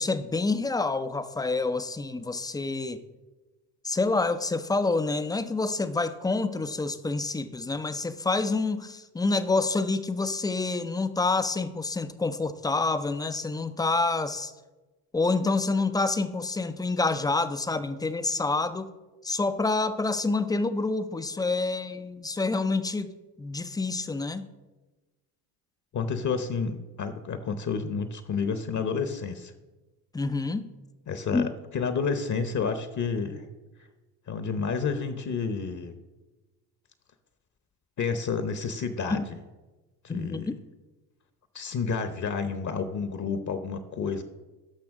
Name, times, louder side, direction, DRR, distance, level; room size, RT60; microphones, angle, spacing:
voice 1, 0.0-3.0 3.8-14.5 15.1-18.9 19.2-23.1 23.4-24.5 30.1-30.7 31.3-31.5 39.1-39.3 40.1-40.6, left 3 dB, 10° left, 11 dB, 0.4 m, -27 dB
voice 2, 25.9-29.5 31.1-33.5 34.3-36.0 38.0-39.4 40.0-40.5 41.5-44.2, left 5 dB, 35° left, 9 dB, 0.8 m, -30 dB
13.0 x 5.7 x 3.6 m, 1.1 s
hypercardioid pair, 75°, 49 cm